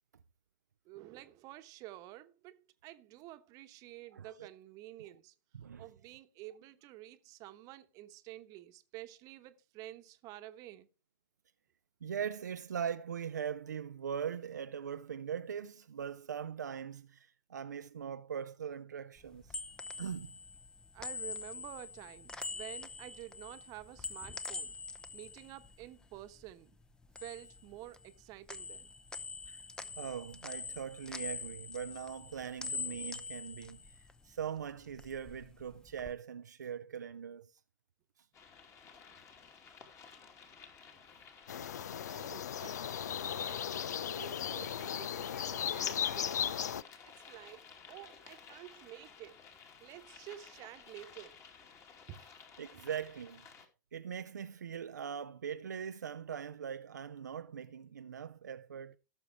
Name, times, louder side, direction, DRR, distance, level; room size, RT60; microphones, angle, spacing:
voice 1, 0.8-5.3 5.8-10.9 20.9-24.8 25.1-26.8 27.2-28.9 40.1-40.3 42.1-43.8 44.1-46.5 47.0-49.4 49.8-51.7 52.1-52.2, right 15 dB, 40° right, 1.1 m, -50 dB
voice 2, 4.1-4.5 5.5-5.9 12.0-19.6 20.0-20.4 29.5-29.6 30.0-37.5 52.6-53.5 53.9-59.0, right 8 dB, 75° right, 0.5 m, -41 dB
sound 1, 19.2-26.5 26.8-28.2 28.5-34.5 34.8-36.1, left 4 dB, 10° left, 0.8 m, -44 dB
sound 2, 38.3-53.7, left 6 dB, 30° left, 2.5 m, -54 dB
sound 3, 41.5-46.8, left 9 dB, 65° left, 0.5 m, -36 dB
17.0 x 7.0 x 3.3 m
figure-of-eight pair, 100°, 10 cm